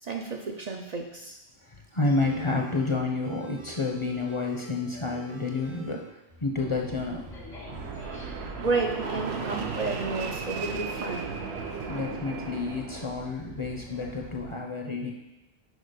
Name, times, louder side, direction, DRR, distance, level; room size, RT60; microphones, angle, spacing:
voice 1, 0.0-1.4 8.6-11.3 11.8-11.9, right 4 dB, 50° right, 2 dB, 0.6 m, -31 dB
voice 2, 1.6-7.3 11.9-15.1, left 3 dB, 35° left, 1 dB, 0.7 m, -30 dB
sound 1, 2.1-7.4 7.7-8.5, equal, 75° right, 2.0 m, -49 dB
sound 2, 6.6-14.6, left 1 dB, 80° left, 1.9 m, -44 dB
Fixed-wing aircraft airplane, 7.6-13.3, right 5 dB, 90° right, 1.0 m, -36 dB
6.3 x 4.6 x 5.0 m, 0.94 s
omnidirectional pair, 1.0 m